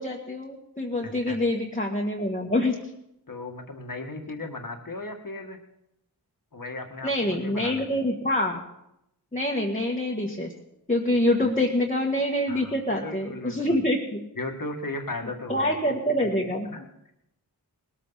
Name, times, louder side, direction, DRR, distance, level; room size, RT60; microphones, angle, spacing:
voice 1, 0.0-2.8 7.0-8.6 9.3-10.5 10.9-14.2 15.5-16.7, left 1 dB, 20° left, -2 dB, 1.9 m, -26 dB
voice 2, 1.0-1.4 3.3-5.6 6.5-8.0 11.4-11.5 12.5-13.8 14.4-17.1, left 2 dB, 55° left, 4 dB, 2.0 m, -37 dB
20.0 x 14.0 x 4.2 m, 0.83 s
wide cardioid pair, 55°, 40 cm